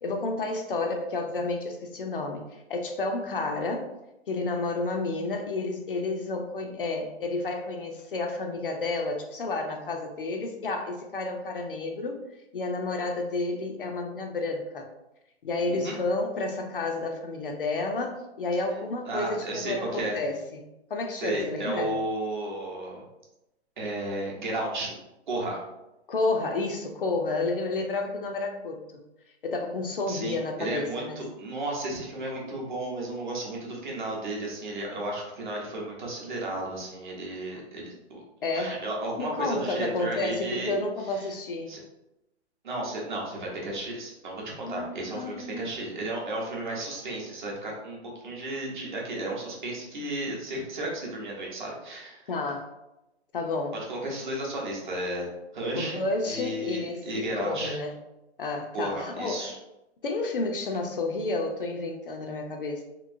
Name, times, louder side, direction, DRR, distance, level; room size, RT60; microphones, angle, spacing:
voice 1, 0.0-3.9 4.3-12.2 12.5-14.9 15.4-21.9 26.1-29.0 29.4-31.2 37.5-37.6 38.4-38.8 39.2-41.7 44.6-45.8 52.3-52.7 53.3-53.8 55.8-57.9 58.4-59.5 60.0-62.8, left 3 dB, 50° left, 3 dB, 0.4 m, -31 dB
voice 2, 19.1-20.2 21.1-23.0 23.8-24.9 25.3-25.6 30.1-38.2 38.5-40.8 41.1-41.3 41.7-41.8 42.6-48.0 48.2-52.2 53.7-56.0 56.2-57.8 58.7-59.6, right 1 dB, 45° right, -2 dB, 0.8 m, -33 dB
3.0 x 2.7 x 2.5 m, 0.92 s
hypercardioid pair, 175°, 34 cm